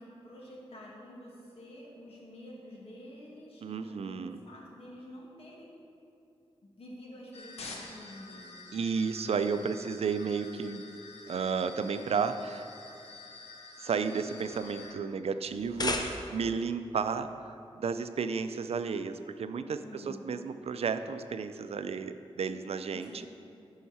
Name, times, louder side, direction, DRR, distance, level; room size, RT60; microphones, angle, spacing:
voice 1, 0.0-5.7 6.8-8.5 19.8-20.3 22.9-23.3, left 1 dB, 65° left, -4 dB, 2.2 m, -48 dB
voice 2, 3.6-4.4 8.7-10.8 11.3-12.7 13.8-23.3, right 5 dB, 70° right, 10 dB, 0.5 m, -33 dB
sound 1, 7.3-14.9, left 3 dB, 85° left, 1.2 m, -48 dB
sound 2, 15.5-16.6, left 2 dB, 40° left, 0.7 m, -34 dB
14.0 x 5.7 x 4.3 m, 2.6 s
wide cardioid pair, 85°, 11 cm